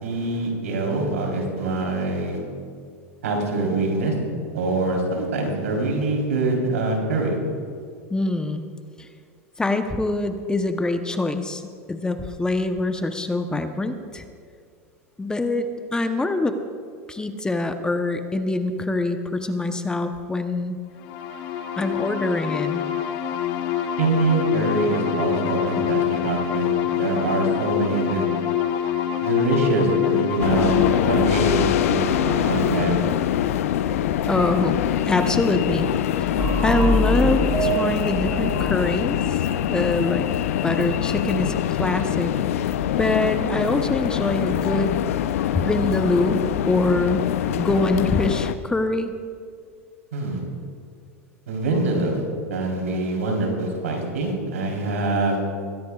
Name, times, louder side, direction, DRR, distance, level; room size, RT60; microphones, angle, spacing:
voice 1, 0.0-2.4 3.2-4.1 4.5-7.4 24.0-28.3 29.2-33.0 50.1-50.4 51.5-52.2 52.5-55.4, right 2 dB, 85° right, 0 dB, 3.8 m, -24 dB
voice 2, 8.1-8.6 9.0-9.1 9.6-11.6 11.9-14.2 15.2-16.6 17.1-20.8 21.8-22.8 34.2-34.8 35.1-35.9 36.6-39.2 39.7-40.3 40.6-42.3 42.9-45.0 45.5-47.2 47.6-49.1, left 2 dB, 10° left, 7 dB, 0.9 m, -24 dB
sound 1, 21.0-34.5, left 10 dB, 55° left, 1.2 m, -26 dB
sound 2, 30.4-48.5, left 11 dB, 75° left, 0.6 m, -24 dB
sound 3, 36.4-40.0, right 2 dB, 10° right, 3.7 m, -26 dB
21.5 x 16.0 x 2.4 m, 2.2 s
hypercardioid pair, 110°, 8 cm